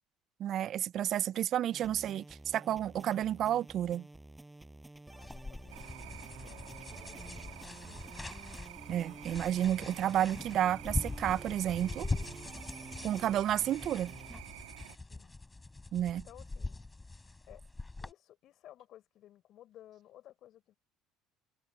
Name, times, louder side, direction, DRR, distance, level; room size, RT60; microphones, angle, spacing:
voice 1, 0.4-4.1 8.9-12.1 13.0-14.1 15.9-16.2, right 11 dB, 55° right, 0.3 m, -31 dB
sound 1, 1.7-14.4, right 2 dB, 10° right, 6.8 m, -51 dB
voice 2, 5.1-6.2 6.4-8.1 15.0-15.4 16.1-16.8 17.1-17.6 18.0-20.8, left 12 dB, 60° left, 6.0 m, -58 dB
sound 2, 5.2-18.1, left 3 dB, 15° left, 3.2 m, -42 dB
sound 3, 5.7-15.0, right 16 dB, 90° right, 1.2 m, -50 dB
supercardioid pair, 85°, 0 cm